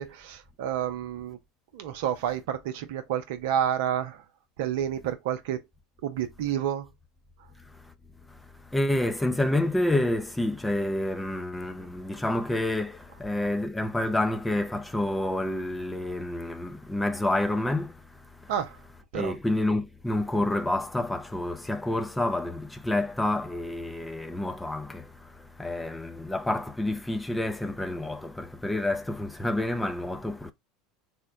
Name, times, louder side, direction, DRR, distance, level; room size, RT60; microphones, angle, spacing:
voice 1, 0.0-1.4 1.7-4.2 4.6-5.6 6.0-6.9 18.5-18.7 19.1-19.3, right 10 dB, 65° right, 0.6 m, -29 dB
voice 2, 7.6-7.9 8.3-18.5 19.1-30.5, left 1 dB, 10° left, 0.5 m, -29 dB
3.5 x 2.1 x 3.8 m
hypercardioid pair, 75°, 0 cm